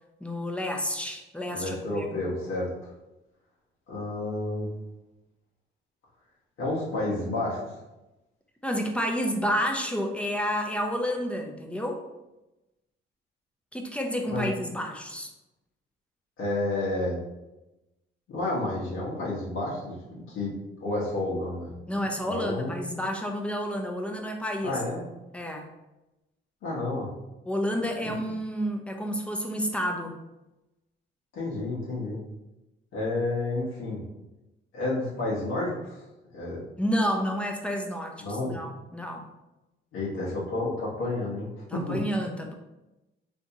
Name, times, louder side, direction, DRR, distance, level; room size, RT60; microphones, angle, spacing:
voice 1, 0.2-2.0 8.6-12.0 13.7-15.3 21.9-24.8 25.3-25.7 27.5-30.1 36.8-39.3 41.7-42.5, equal, 5° left, 2 dB, 0.5 m, -30 dB
voice 2, 1.5-2.7 3.9-4.7 6.6-7.7 14.3-14.5 16.4-17.2 18.3-20.5 20.8-21.7 22.2-22.8 24.6-25.0 26.6-27.1 28.0-28.2 31.3-32.2 32.9-34.0 34.7-36.0 36.3-36.6 38.2-38.5 39.9-42.0, left 2 dB, 80° left, -6 dB, 1.1 m, -30 dB
3.4 x 2.6 x 2.7 m, 0.98 s
cardioid pair, 90°, 20 cm